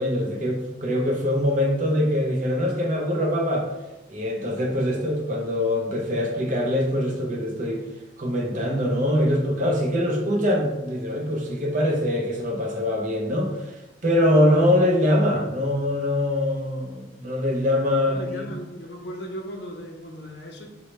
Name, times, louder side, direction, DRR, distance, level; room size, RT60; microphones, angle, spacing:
voice 1, 0.0-3.7 4.1-7.8 8.2-18.5, left 1 dB, 40° right, 0 dB, 0.6 m, -23 dB
voice 2, 18.1-20.7, equal, 60° left, 2 dB, 0.5 m, -37 dB
4.4 x 2.1 x 3.0 m, 1.0 s
head